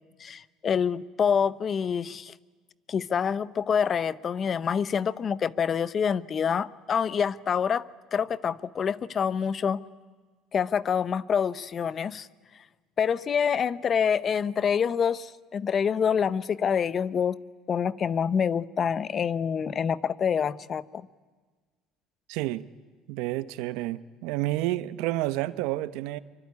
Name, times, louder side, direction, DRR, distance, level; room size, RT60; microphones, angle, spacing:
voice 1, 0.2-2.3 2.9-9.8 10.5-12.3 13.0-17.4 17.7-21.1, left 7 dB, 40° left, 0.8 m, -26 dB
voice 2, 22.3-22.7 23.1-26.2, right 16 dB, 80° right, 1.0 m, -30 dB
25.0 x 24.0 x 9.7 m
supercardioid pair, 100°, 0 cm